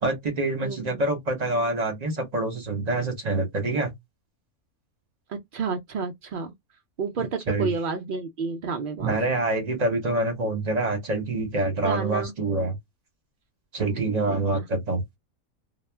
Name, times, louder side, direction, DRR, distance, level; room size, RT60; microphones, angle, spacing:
voice 1, 0.0-3.9 7.5-7.7 9.0-12.7 13.7-15.0, right 2 dB, 35° right, 0.7 m, -26 dB
voice 2, 0.6-1.0 5.3-6.5 7.0-9.2 11.8-12.3 13.8-14.7, right 5 dB, 90° right, 0.4 m, -31 dB
2.3 x 2.1 x 3.2 m
omnidirectional pair, 1.5 m